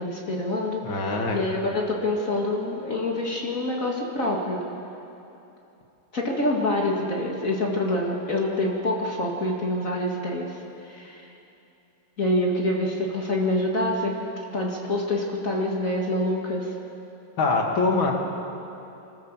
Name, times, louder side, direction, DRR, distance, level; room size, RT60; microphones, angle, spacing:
voice 1, 0.0-4.6 6.1-10.5 10.8-11.3 12.2-16.8, left 1 dB, 40° left, -2 dB, 2.4 m, -26 dB
voice 2, 0.8-1.4 17.4-18.1, left 3 dB, 80° left, 0 dB, 3.0 m, -23 dB
26.0 x 13.5 x 7.5 m, 2.8 s
omnidirectional pair, 2.1 m